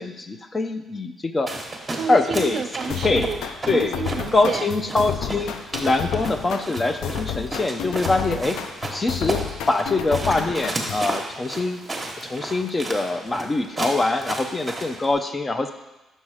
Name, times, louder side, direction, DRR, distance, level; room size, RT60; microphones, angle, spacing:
voice 1, 0.0-1.5 2.1-2.7 3.0-3.3 3.7-3.9 4.3-5.6 5.8-8.6 8.9-11.9 12.2-15.7, left 2 dB, 25° left, 7 dB, 0.6 m, -23 dB
walking fast inside a forest, 1.5-15.1, right 2 dB, 20° right, 1.2 m, -33 dB
voice 2, 1.9-4.7, right 6 dB, 55° right, 10 dB, 0.3 m, -30 dB
sound 1, 2.9-11.1, left 8 dB, 85° left, 0.4 m, -31 dB
5.8 x 5.4 x 4.9 m, 1.0 s
cardioid pair, 90°, 0 cm